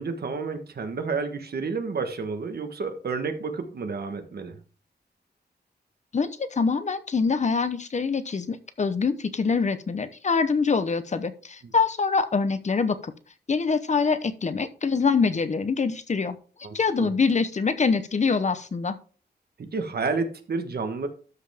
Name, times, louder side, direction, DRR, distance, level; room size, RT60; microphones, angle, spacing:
voice 1, 0.0-4.6 11.6-11.7 16.6-17.1 19.6-21.1, right 4 dB, 65° right, 7 dB, 1.3 m, -30 dB
voice 2, 6.1-13.1 13.5-16.4 16.7-19.0, left 5 dB, 40° left, 11 dB, 0.8 m, -24 dB
12.5 x 5.4 x 3.5 m, 0.39 s
wide cardioid pair, 155°, 18 cm